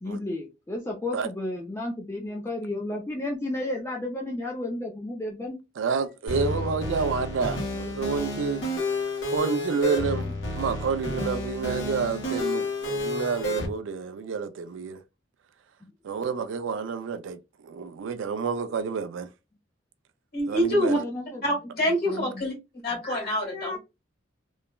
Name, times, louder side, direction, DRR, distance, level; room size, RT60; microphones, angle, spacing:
voice 1, 0.0-5.6 20.8-21.4 22.1-22.4, left 2 dB, 15° left, 0.4 m, -32 dB
voice 2, 5.8-8.6 9.3-15.0 16.0-19.3 20.5-21.0, right 5 dB, 75° right, 0.3 m, -29 dB
sound 1, 6.3-13.7, left 1 dB, 70° left, 1.1 m, -30 dB
voice 3, 20.3-21.0 21.4-22.5 22.8-23.8, equal, 55° left, 1.6 m, -25 dB
3.0 x 2.1 x 2.2 m
head